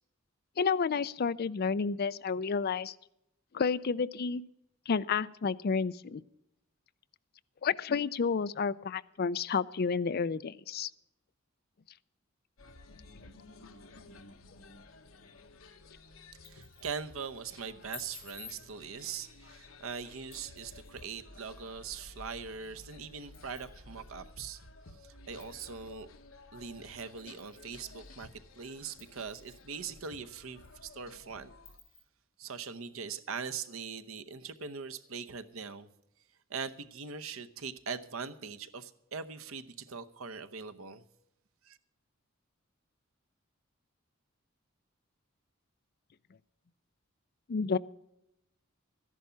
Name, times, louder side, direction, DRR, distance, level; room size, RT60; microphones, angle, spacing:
voice 1, 0.6-2.9 3.5-4.4 4.9-6.2 7.6-10.9 47.5-47.8, left 5 dB, 50° left, 16 dB, 0.4 m, -30 dB
sound 1, 12.6-31.8, left 2 dB, 80° left, 1.2 m, -54 dB
sound 2, 16.2-17.0 17.9-18.6 20.3-21.1 22.6-22.7 23.3-23.7 24.4-24.5 25.4-25.7 27.0-27.7 28.1-28.2 29.0-29.7 30.2-30.3 30.6-30.7 31.7-32.0, left 7 dB, 30° left, 4.5 m, -52 dB
voice 2, 16.4-24.6 25.0-26.1 26.5-31.5 32.4-35.9 36.5-41.0 41.6-41.8, right 6 dB, 85° right, 10 dB, 0.9 m, -41 dB
13.5 x 11.0 x 5.7 m, 0.85 s
head